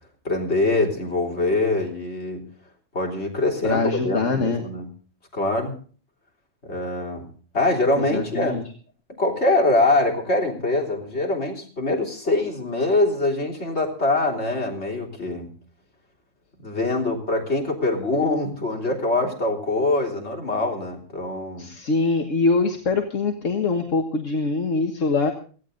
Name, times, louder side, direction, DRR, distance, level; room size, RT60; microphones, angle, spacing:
voice 1, 0.2-2.5 2.9-4.9 5.3-5.8 6.6-7.3 7.5-8.6 9.2-15.5 16.6-21.7, left 2 dB, 55° left, 1 dB, 3.8 m, -23 dB
voice 2, 3.6-4.6 8.1-8.6 21.6-25.3, left 3 dB, 75° left, 4 dB, 1.9 m, -23 dB
18.0 x 15.0 x 3.9 m, 0.41 s
omnidirectional pair, 1.3 m